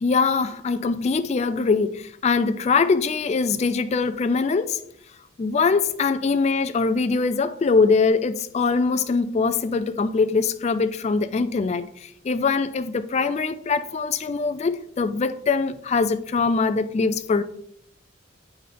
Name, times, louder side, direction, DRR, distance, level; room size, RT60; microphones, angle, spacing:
voice 1, 0.0-4.8 5.4-17.4, left 4 dB, 35° left, 0.3 m, -22 dB
9.1 x 3.3 x 3.9 m
head